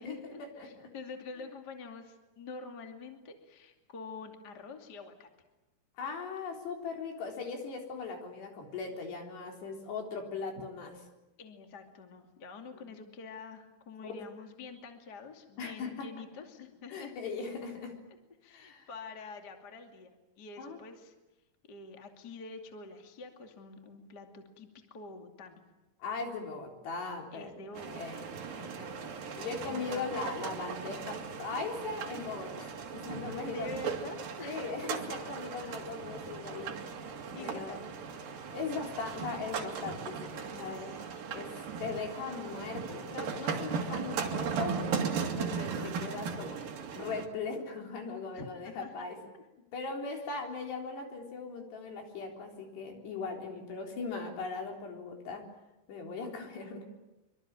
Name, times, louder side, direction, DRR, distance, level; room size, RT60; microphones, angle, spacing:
voice 1, 0.0-5.3 11.4-17.2 18.4-21.1 21.7-25.6 27.3-28.9 29.3-30.1 33.5-34.6 35.4-35.7 37.3-37.8 40.7-41.2 45.9-46.1 48.3-49.1 49.3-49.4 50.1-50.2, left 4 dB, 35° left, 4 dB, 1.6 m, -47 dB
voice 2, 0.6-0.9 6.0-11.0 12.9-13.0 14.0-14.1 15.6-16.1 16.9-17.9 18.5-18.9 20.6-20.8 26.0-27.5 27.9-28.3 29.4-33.7 34.4-37.0 37.3-37.9 38.5-41.0 41.3-44.8 45.2-46.6 47.0-49.2 49.7-55.4 55.9-56.8, left 4 dB, 55° left, 2 dB, 5.7 m, -39 dB
sound 1, 27.8-47.3, right 6 dB, 50° right, 3.3 m, -37 dB
25.5 x 24.5 x 8.9 m, 1.0 s
omnidirectional pair, 6.0 m